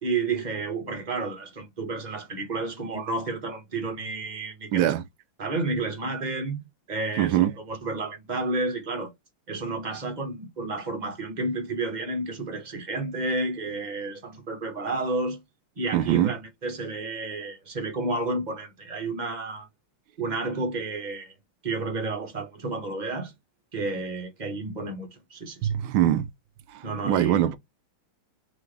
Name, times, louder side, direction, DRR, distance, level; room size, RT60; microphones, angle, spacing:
voice 1, 0.0-4.9 5.4-9.1 9.5-15.4 15.8-19.7 20.2-21.3 21.6-23.3 23.7-25.7 26.8-27.4, right 3 dB, 25° right, 1.3 m, -31 dB
voice 2, 4.7-5.0 7.2-7.5 15.9-16.3 25.6-26.3 26.7-27.6, right 12 dB, 70° right, 1.4 m, -23 dB
4.0 x 3.7 x 3.3 m
omnidirectional pair, 2.4 m